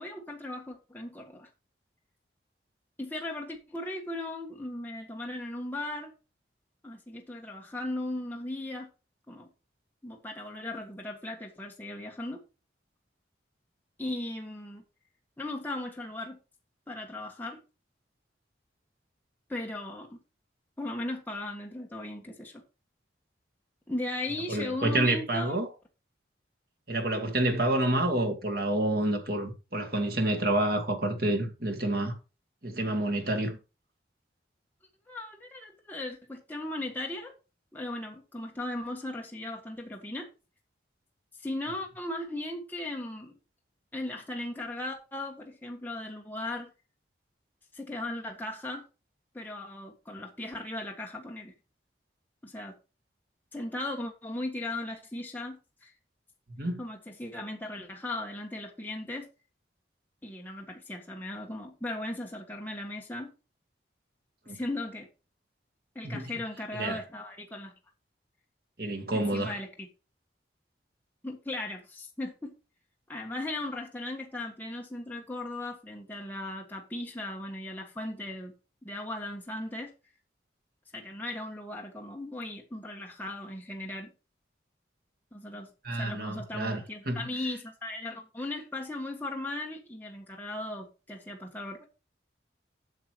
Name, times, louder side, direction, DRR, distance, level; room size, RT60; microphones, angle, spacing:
voice 1, 0.0-1.5 3.0-6.1 6.8-8.9 9.3-9.5 10.0-12.4 14.0-14.8 15.4-16.4 16.9-17.6 19.5-20.2 20.8-22.6 23.9-25.6 35.1-37.3 37.7-40.3 41.4-43.3 43.9-46.7 47.7-48.8 49.3-51.5 52.4-52.7 53.5-55.9 56.8-59.3 60.2-63.3 64.5-65.1 65.9-67.7 69.1-69.9 71.2-72.5 73.1-78.5 78.8-79.9 80.9-84.1 85.3-85.7 86.0-91.9, left 1 dB, 10° left, 1.5 m, -37 dB
voice 2, 24.5-25.7 26.9-32.1 32.6-33.6 56.6-56.8 64.5-64.6 66.0-66.3 66.7-67.0 68.8-69.6 85.8-87.3, right 1 dB, 55° right, 2.1 m, -28 dB
8.2 x 6.7 x 4.7 m
head